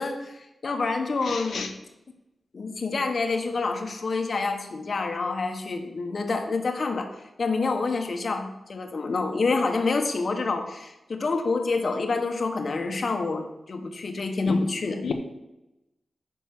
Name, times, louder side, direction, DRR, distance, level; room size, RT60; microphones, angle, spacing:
voice 1, 0.0-1.7 2.5-15.1, left 3 dB, 45° left, 5 dB, 1.2 m, -27 dB
voice 2, 1.3-1.7 14.4-14.6 15.0-15.1, left 6 dB, 85° left, 4 dB, 0.9 m, -30 dB
9.5 x 6.1 x 6.0 m, 0.94 s
wide cardioid pair, 165°, 0 cm